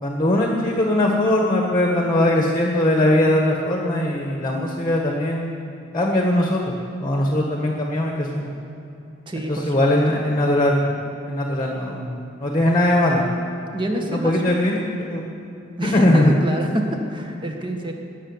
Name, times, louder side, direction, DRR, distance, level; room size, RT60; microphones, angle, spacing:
voice 1, 0.0-5.5 5.9-8.5 9.5-10.7 11.3-13.2 14.1-15.3 15.9-16.3, left 1 dB, 20° left, 0 dB, 1.5 m, -20 dB
voice 2, 9.3-10.0 13.7-14.6 15.8-17.9, right 1 dB, 25° right, 2 dB, 1.4 m, -27 dB
18.0 x 7.1 x 9.6 m, 2.8 s
head